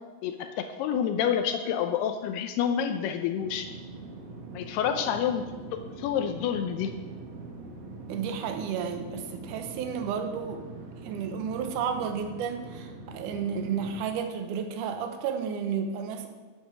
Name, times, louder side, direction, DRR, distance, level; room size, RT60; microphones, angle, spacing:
voice 1, 0.2-3.7 4.5-5.4 5.7-7.0, left 8 dB, 80° left, 7 dB, 2.6 m, -28 dB
sound 1, 3.4-14.0, right 3 dB, 60° right, 2.5 m, -43 dB
voice 2, 8.1-10.6 11.0-16.3, right 7 dB, 75° right, 6 dB, 1.9 m, -32 dB
9.1 x 8.4 x 7.0 m, 1.4 s
omnidirectional pair, 4.9 m